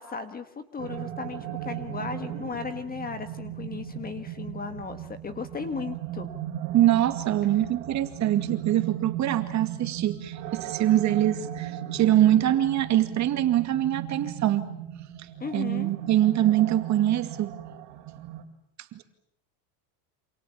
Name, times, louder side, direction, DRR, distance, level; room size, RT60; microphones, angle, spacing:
voice 1, 0.0-6.3 15.4-15.9, left 5 dB, 20° left, 10 dB, 1.6 m, -36 dB
sound 1, 0.8-18.4, right 11 dB, 50° right, 3.9 m, -37 dB
voice 2, 6.7-14.7 15.5-17.5 18.9-19.0, right 12 dB, 35° right, 8 dB, 2.3 m, -23 dB
28.0 x 27.5 x 7.3 m, 0.72 s
supercardioid pair, 145°, 48 cm